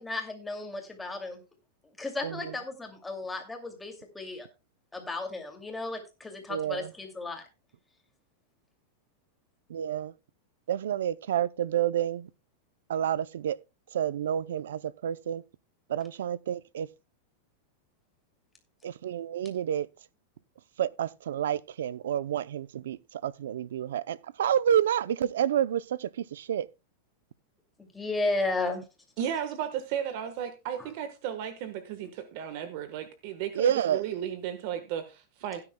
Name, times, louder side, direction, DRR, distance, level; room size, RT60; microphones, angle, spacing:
voice 1, 0.0-1.4 2.0-4.5 4.9-7.4 27.9-28.8 30.8-30.9, left 2 dB, 5° left, 2.4 m, -34 dB
voice 2, 2.2-2.6 6.5-6.9 9.7-10.1 10.7-12.3 12.9-13.6 13.9-15.4 15.9-16.9 18.8-19.9 20.8-26.7 33.5-34.0, right 10 dB, 90° right, 0.5 m, -29 dB
voice 3, 29.2-35.6, right 9 dB, 55° right, 1.2 m, -34 dB
16.5 x 9.8 x 2.2 m
supercardioid pair, 150°, 0 cm